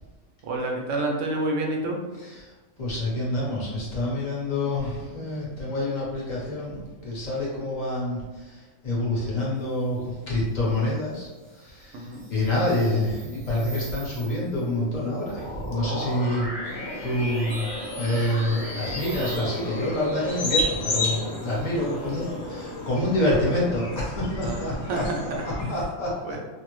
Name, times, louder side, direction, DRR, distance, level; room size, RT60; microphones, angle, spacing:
voice 1, 0.5-2.0 11.9-12.3 24.4-25.4 26.2-26.4, right 2 dB, 70° right, 0 dB, 0.9 m, -29 dB
voice 2, 2.2-2.5 2.8-17.7 17.9-26.4, left 1 dB, 40° left, -6 dB, 0.9 m, -27 dB
sound 1, 12.0-22.9, equal, 40° right, 0.8 m, -38 dB
sound 2, 16.6-25.7, left 1 dB, 65° left, 1.0 m, -32 dB
3.3 x 2.1 x 3.0 m, 1.2 s
omnidirectional pair, 1.4 m